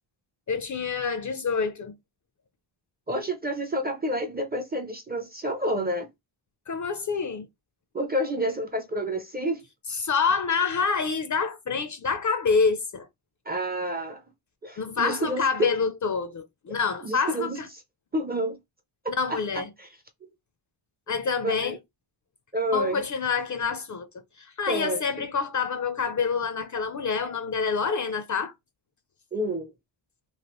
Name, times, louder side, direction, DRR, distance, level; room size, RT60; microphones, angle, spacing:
voice 1, 0.5-1.9 6.7-7.5 9.9-13.1 14.8-17.7 19.2-19.7 21.1-21.8 22.7-24.1 24.4-28.5, left 5 dB, 40° left, 0.4 m, -27 dB
voice 2, 3.1-6.1 7.9-9.6 13.5-14.2 14.6-15.5 17.0-17.6 18.1-18.6 19.3-19.9 20.2-20.3 21.4-21.8 22.5-23.0 24.7-25.0 29.3-29.7, right 1 dB, 20° right, 0.4 m, -29 dB
3.1 x 2.4 x 2.9 m
wide cardioid pair, 130°, 50 cm